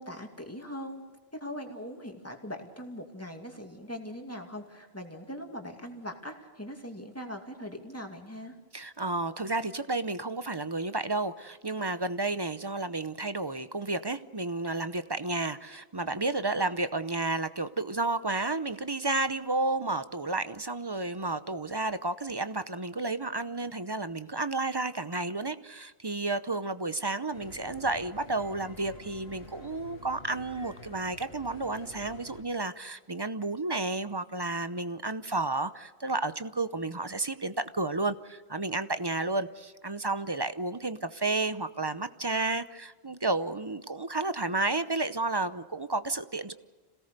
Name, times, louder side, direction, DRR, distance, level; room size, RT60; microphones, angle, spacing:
voice 1, 0.0-8.6, equal, 15° left, 3 dB, 2.5 m, -41 dB
voice 2, 8.7-46.5, right 2 dB, 25° right, 12 dB, 0.7 m, -31 dB
sound 1, 27.3-32.4, left 2 dB, 85° left, 2.9 m, -49 dB
27.0 x 17.5 x 6.8 m, 1.3 s
omnidirectional pair, 1.0 m